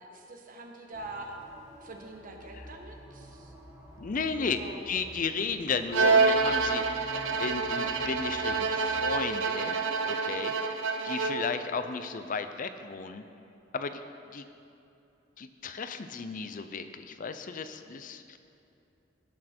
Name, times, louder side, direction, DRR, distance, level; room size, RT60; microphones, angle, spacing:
voice 1, 0.0-1.4 1.8-3.5 4.4-4.8, right 2 dB, 45° right, 2 dB, 1.2 m, -44 dB
sound 1, 0.9-8.9, equal, 15° right, 2.1 m, -50 dB
voice 2, 4.0-4.6 4.9-7.0 7.4-9.8 10.0-13.2 13.7-14.0 14.3-14.4 15.4-18.4, left 5 dB, 45° left, 9 dB, 0.5 m, -34 dB
Bowed string instrument, 5.9-11.6, right 4 dB, 85° right, 0.6 m, -27 dB
17.5 x 6.4 x 4.4 m, 2.8 s
head